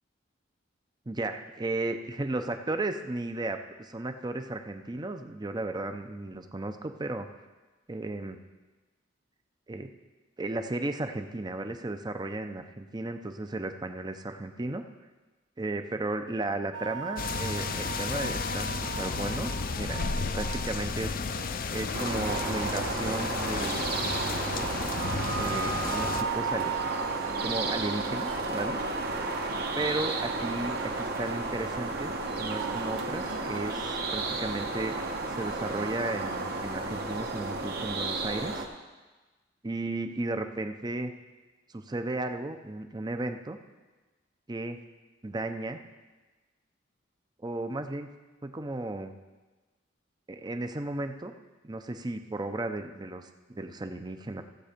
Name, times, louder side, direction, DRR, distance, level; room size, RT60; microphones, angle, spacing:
voice 1, 1.1-7.3 7.9-8.4 9.7-9.9 10.4-14.8 15.6-19.5 19.8-21.1 21.7-23.9 25.3-26.7 27.4-28.8 29.8-32.1 32.4-35.0 35.3-38.6 39.6-41.1 41.7-43.6 44.5-44.8 45.2-45.8 47.4-48.1 48.4-49.1 50.3-51.3 51.6-54.4, right 2 dB, 20° right, 7 dB, 0.6 m, -34 dB
sound 1, 16.7-33.8, right 5 dB, 85° right, 0.9 m, -38 dB
sound 2, 17.2-26.2, left 4 dB, 50° left, 0.5 m, -33 dB
sound 3, 21.9-38.7, right 3 dB, 55° right, 1.2 m, -33 dB
15.0 x 7.5 x 5.1 m, 1.2 s
head